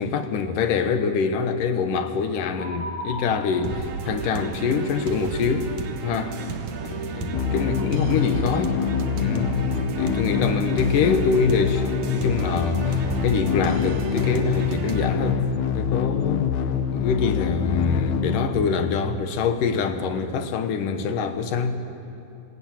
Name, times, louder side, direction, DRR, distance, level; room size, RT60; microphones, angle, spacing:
voice 1, 0.0-6.5 6.8-8.8 9.1-9.6 10.0-15.5 15.7-16.5 16.9-21.8, left 5 dB, 85° left, 2.9 m, -25 dB
sound 1, 2.6-4.0 7.7-7.9, left 1 dB, 30° left, 5.8 m, -35 dB
sound 2, 3.6-15.1, right 5 dB, 65° right, 2.5 m, -32 dB
sound 3, 7.3-19.3, left 8 dB, 70° left, 2.2 m, -25 dB
27.0 x 18.5 x 9.0 m
omnidirectional pair, 3.7 m